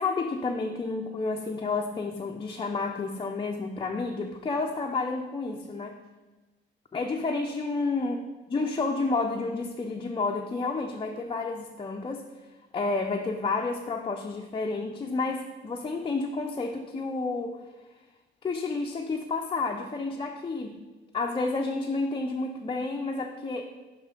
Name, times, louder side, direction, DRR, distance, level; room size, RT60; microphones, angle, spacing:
voice 1, 0.0-6.0 6.9-8.2 8.5-12.2 12.7-17.6 18.4-20.8 21.1-23.6, left 3 dB, 25° left, 1 dB, 0.6 m, -30 dB
5.6 x 5.4 x 5.1 m, 1.2 s
cardioid pair, 90°, 20 cm